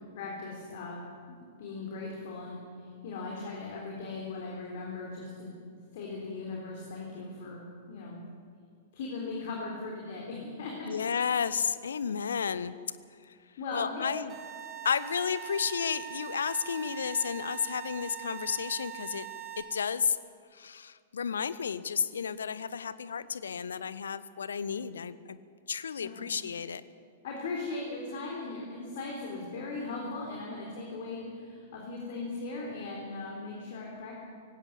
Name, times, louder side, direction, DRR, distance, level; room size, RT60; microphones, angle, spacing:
voice 1, 0.1-1.0 1.6-5.5 5.9-8.2 8.9-10.9 13.6-14.1 26.0-26.2 27.2-34.2, left 3 dB, 50° left, -2 dB, 3.8 m, -38 dB
voice 2, 10.9-12.7 13.3-13.4 13.7-14.3 14.8-19.3 19.6-20.2 20.5-25.4 25.7-26.8, left 6 dB, 65° left, 16 dB, 0.8 m, -32 dB
sound 1, 14.3-19.6, right 12 dB, 20° right, 4.4 m, -42 dB
19.0 x 16.5 x 8.6 m, 2.2 s
figure-of-eight pair, 105°, 0 cm